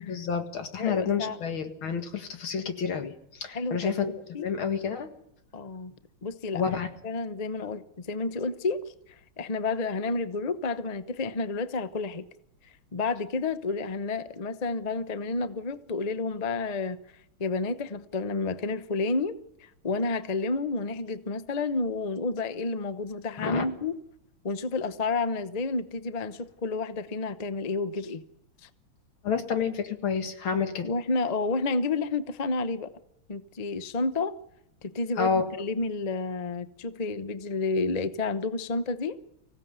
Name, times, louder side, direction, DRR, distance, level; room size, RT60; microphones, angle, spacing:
voice 1, 0.0-4.1 4.4-5.1 6.5-6.9 23.4-23.6 29.2-30.9 35.2-35.5, left 6 dB, 80° left, 2.7 m, -29 dB
voice 2, 0.8-1.4 3.5-3.9 4.3-4.5 5.5-5.9 6.2-6.6 7.0-8.8 9.4-12.2 12.9-17.0 17.4-23.9 24.4-28.2 30.8-32.9 33.3-34.3 34.8-39.2, left 3 dB, 35° left, 0.6 m, -30 dB
25.0 x 16.5 x 8.1 m
omnidirectional pair, 2.2 m